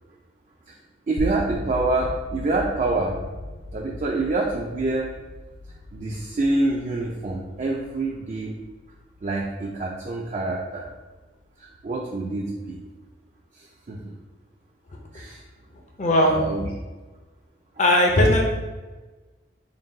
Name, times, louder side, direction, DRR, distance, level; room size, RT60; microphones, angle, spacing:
voice 1, 1.1-3.2 3.7-5.1 5.9-8.6 9.2-10.9 11.6-12.8 13.5-14.0 15.1-15.4 16.2-16.7, right 2 dB, 40° right, -2 dB, 0.4 m, -26 dB
sound 1, 1.2-11.2, left 2 dB, 85° left, 0.4 m, -38 dB
voice 2, 16.0-16.4 17.8-18.4, left 1 dB, 40° left, 1 dB, 0.5 m, -17 dB
3.9 x 2.2 x 3.8 m, 1.2 s
head